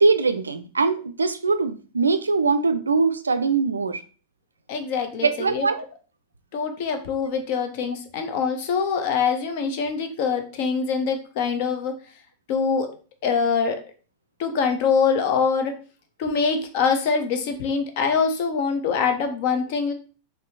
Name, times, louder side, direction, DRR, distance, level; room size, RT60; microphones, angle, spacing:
voice 1, 0.0-4.0 5.2-5.8, right 4 dB, 75° right, 10 dB, 0.4 m, -22 dB
voice 2, 4.7-5.7 6.5-12.0 12.5-12.9 13.2-13.8 14.4-15.7 16.2-19.9, left 5 dB, 50° left, 7 dB, 0.6 m, -24 dB
4.1 x 2.7 x 2.7 m, 0.37 s
figure-of-eight pair, 90°, 0 cm